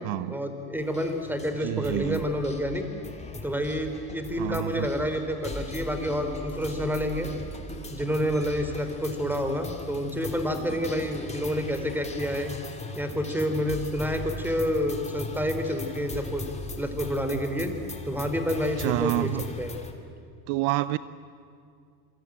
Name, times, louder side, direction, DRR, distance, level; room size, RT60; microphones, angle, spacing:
voice 1, 0.3-2.9 3.4-7.3 7.9-12.5 13.0-16.4 16.8-17.7 18.1-19.8, equal, 5° right, 4.0 m, -29 dB
sound 1, 0.8-19.9, left 2 dB, 15° left, 2.9 m, -39 dB
voice 2, 1.6-2.2 4.4-4.9 18.8-19.4 20.5-21.0, right 18 dB, 60° right, 0.8 m, -28 dB
27.0 x 24.0 x 9.0 m
supercardioid pair, 95°, 47 cm